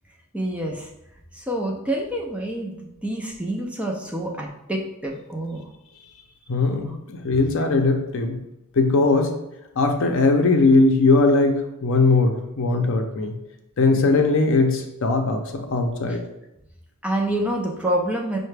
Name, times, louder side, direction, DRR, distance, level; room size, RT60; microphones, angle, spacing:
voice 1, 0.3-0.9 1.3-2.7 3.0-5.6 17.0-18.4, right 1 dB, 5° right, -1 dB, 0.4 m, -27 dB
voice 2, 6.5-8.4 8.7-9.4 9.8-13.3 13.8-16.2, left 3 dB, 65° left, 4 dB, 0.5 m, -19 dB
5.6 x 2.1 x 3.2 m, 0.88 s
head